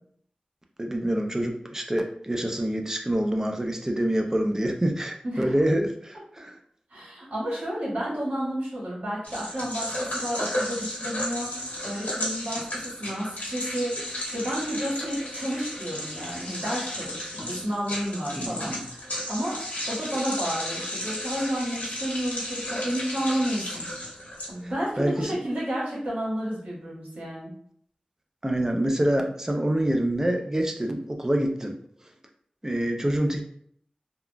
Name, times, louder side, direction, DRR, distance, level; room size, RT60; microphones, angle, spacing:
voice 1, 0.8-6.6 18.4-18.8 25.0-25.4 28.4-31.8 32.6-33.4, right 1 dB, 20° right, 3 dB, 0.4 m, -26 dB
voice 2, 5.2-5.6 6.9-19.6 19.9-23.8 24.5-27.5, equal, 85° right, -7 dB, 1.5 m, -31 dB
sound 1, 9.2-24.9, left 1 dB, 80° left, 1.0 m, -33 dB
3.5 x 2.4 x 2.2 m, 0.64 s
wide cardioid pair, 70°, 3 cm